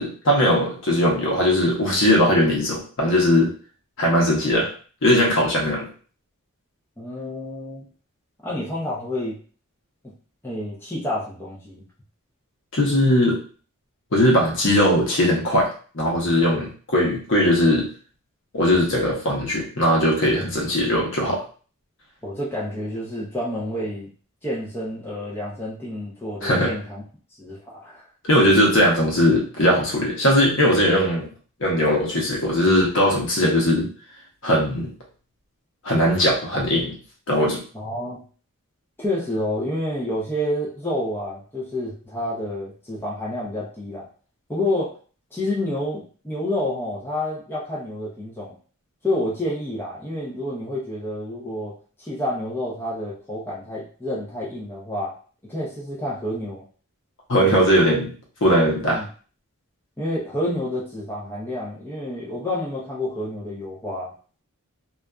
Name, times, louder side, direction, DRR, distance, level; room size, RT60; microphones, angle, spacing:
voice 1, 0.0-3.5 4.0-4.7 5.0-5.9 12.7-13.4 14.1-15.7 15.9-17.9 18.5-21.4 26.4-26.7 28.3-31.3 31.6-33.9 34.4-34.9 35.8-37.0 37.3-37.6 57.3-58.1 58.4-59.0, equal, 60° left, -2 dB, 0.8 m, -19 dB
voice 2, 7.0-7.8 8.4-9.4 10.0-10.1 10.4-11.8 22.2-24.1 24.4-27.0 27.4-28.1 37.7-38.2 39.0-44.1 44.5-44.9 45.3-48.6 49.0-51.7 52.0-55.1 55.4-56.6 58.9-59.1 60.0-64.1, left 1 dB, 10° left, -7 dB, 0.6 m, -29 dB
2.6 x 2.3 x 2.2 m, 0.40 s
head